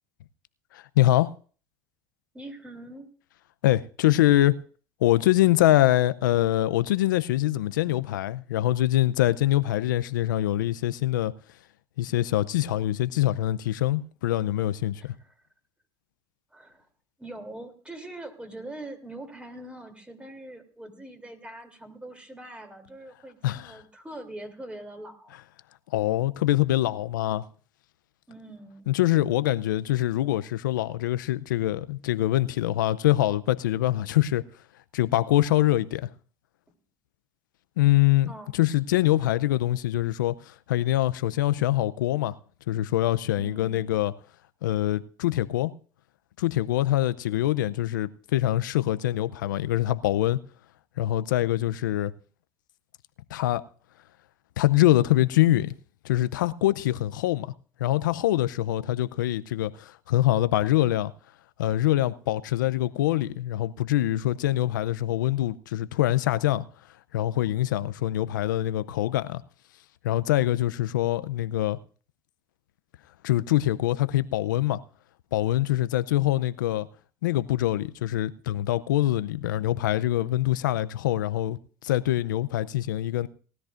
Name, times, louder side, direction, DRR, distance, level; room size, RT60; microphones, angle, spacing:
voice 1, 0.7-1.3 3.6-4.6 5.0-11.3 12.0-15.0 23.4-23.7 25.9-27.4 28.9-34.4 34.9-36.1 37.8-42.3 42.7-44.1 44.6-45.7 46.4-50.4 51.0-52.1 53.3-53.6 54.6-55.7 56.0-57.5 57.8-61.1 61.6-66.7 67.1-69.4 70.0-71.8 73.2-74.8 75.3-76.9 77.2-83.3, left 14 dB, 90° left, 0.6 m, -24 dB
voice 2, 2.3-3.1 15.0-15.4 16.5-16.9 17.2-25.4 28.3-28.9 38.3-38.5 43.4-43.8, right 1 dB, 10° right, 3.1 m, -43 dB
19.0 x 13.0 x 2.6 m
hypercardioid pair, 80°, 10 cm